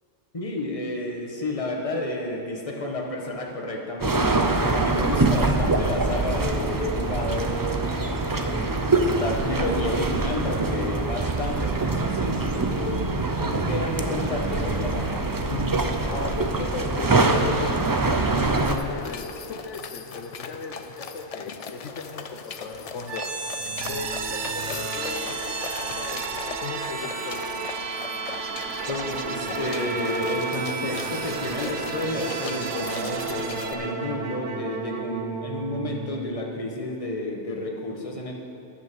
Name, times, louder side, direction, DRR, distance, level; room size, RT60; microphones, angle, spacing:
voice 1, 0.3-7.7 8.2-13.0 13.4-15.8 28.9-38.3, left 1 dB, 30° left, 0 dB, 1.4 m, -31 dB
sound 1, 4.0-18.8, right 3 dB, 25° right, 0.5 m, -24 dB
voice 2, 5.6-6.0 13.0-13.3 16.0-23.2 23.9-27.4, left 4 dB, 75° left, 4 dB, 1.1 m, -37 dB
sound 2, 18.5-33.7, left 6 dB, 55° left, 0.4 m, -40 dB
sound 3, 23.1-36.9, right 5 dB, 80° right, 1.1 m, -32 dB
10.5 x 8.8 x 6.8 m, 2.7 s
omnidirectional pair, 1.2 m